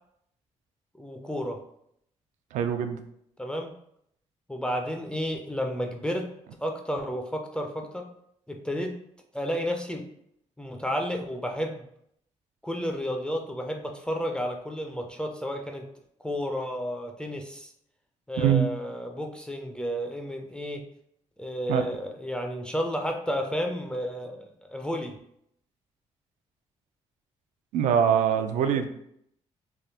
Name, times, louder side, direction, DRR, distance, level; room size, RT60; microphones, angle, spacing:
voice 1, 0.9-1.6 3.4-3.7 4.5-6.3 6.6-8.1 8.5-9.0 9.3-10.1 10.6-11.8 12.6-15.8 16.2-17.7 18.3-20.8 21.4-25.2, equal, 5° left, 3 dB, 0.3 m, -31 dB
voice 2, 2.5-3.0 18.4-18.7 21.7-21.8 27.7-28.9, right 8 dB, 85° right, 8 dB, 0.4 m, -23 dB
3.4 x 2.5 x 2.7 m, 0.72 s
cardioid pair, 115°, 12 cm